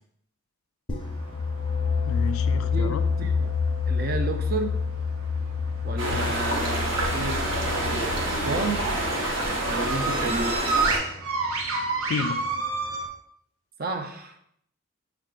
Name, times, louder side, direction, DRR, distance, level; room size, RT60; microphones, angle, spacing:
sound 1, 0.9-10.5, left 5 dB, 25° left, 0.6 m, -28 dB
sound 2, 1.0-13.1, right 3 dB, 85° right, 0.7 m, -33 dB
voice 1, 2.1-3.0 6.1-6.3 12.1-12.4, left 6 dB, 85° left, 12 dB, 0.3 m, -31 dB
voice 2, 2.6-3.5 3.9-4.8 5.8-7.4 7.7-8.9 9.6-10.6 13.8-14.4, right 3 dB, 45° right, 6 dB, 0.5 m, -31 dB
sound 3, 6.0-11.0, right 1 dB, 65° right, 1.2 m, -27 dB
5.6 x 2.4 x 3.7 m, 0.70 s
head